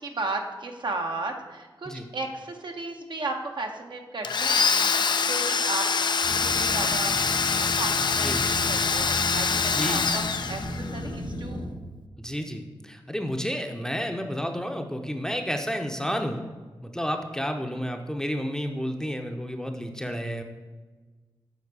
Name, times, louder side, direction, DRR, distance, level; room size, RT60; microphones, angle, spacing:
voice 1, 0.0-5.9 6.1-6.2 6.5-7.1 7.5-11.7, right 2 dB, 60° right, 3 dB, 0.9 m, -35 dB
Domestic sounds home sounds, 4.2-11.0, left 5 dB, 55° left, 0.4 m, -25 dB
sound 1, 6.2-11.7, left 1 dB, 75° right, 1.8 m, -35 dB
voice 2, 8.1-8.8 9.6-10.1 12.2-16.4 16.8-20.4, equal, 5° left, 4 dB, 0.7 m, -31 dB
7.3 x 4.3 x 4.8 m, 1.3 s
cardioid pair, 55°, 9 cm